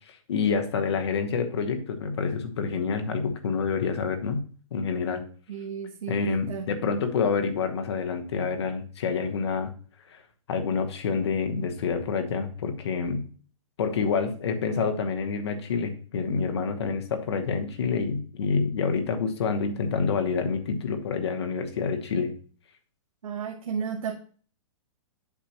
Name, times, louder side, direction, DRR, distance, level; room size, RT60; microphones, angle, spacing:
voice 1, 0.1-4.4 4.7-5.2 6.1-9.7 10.1-10.2 10.5-13.2 13.8-22.3, left 5 dB, 50° left, 6 dB, 1.1 m, -27 dB
voice 2, 5.5-6.7 23.2-24.2, right 7 dB, 80° right, 0 dB, 1.1 m, -33 dB
8.2 x 5.7 x 2.9 m, 0.44 s
hypercardioid pair, 175°, 18 cm